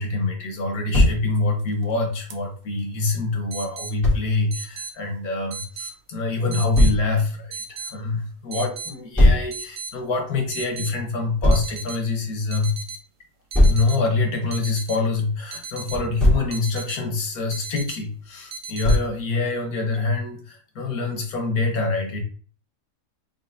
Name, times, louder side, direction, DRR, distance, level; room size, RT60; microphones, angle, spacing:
voice 1, 0.0-12.7 13.6-22.2, left 3 dB, 85° left, 2 dB, 1.6 m, -25 dB
Thump thud, 0.9-1.2 4.0-4.2 6.7-7.0 9.2-9.5 11.4-11.7 13.5-13.9 15.9-16.5 18.8-19.2, left 1 dB, ahead, 1.8 m, -17 dB
sound 1, 1.6-1.8 2.3-2.4 3.5-3.9 4.5-4.9 5.5-5.9 6.5-6.9 7.5-7.9 8.5-8.9 9.5-9.9 10.5-10.9 11.5-12.0 12.5-13.0 13.5-14.0 14.5-15.0 15.5-16.0 16.5-17.0 17.5-18.0 18.5-19.0, right 4 dB, 65° right, 1.0 m, -36 dB
4.0 x 3.8 x 2.6 m, 0.41 s
omnidirectional pair, 1.5 m